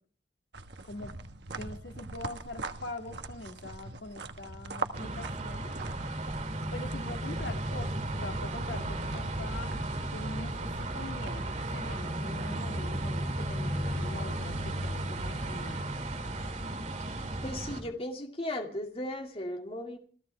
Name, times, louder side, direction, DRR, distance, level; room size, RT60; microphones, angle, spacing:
sound 1, 0.5-13.2, right 3 dB, 70° right, 1.2 m, -44 dB
voice 1, 0.8-1.1 1.5-5.7 6.7-9.8 10.1-15.9, left 2 dB, 80° left, 4 dB, 2.3 m, -43 dB
sound 2, 4.9-17.8, right 1 dB, 40° right, 2.6 m, -34 dB
voice 2, 17.4-20.0, left 1 dB, 35° left, 3 dB, 2.4 m, -36 dB
28.0 x 15.0 x 3.4 m, 0.43 s
head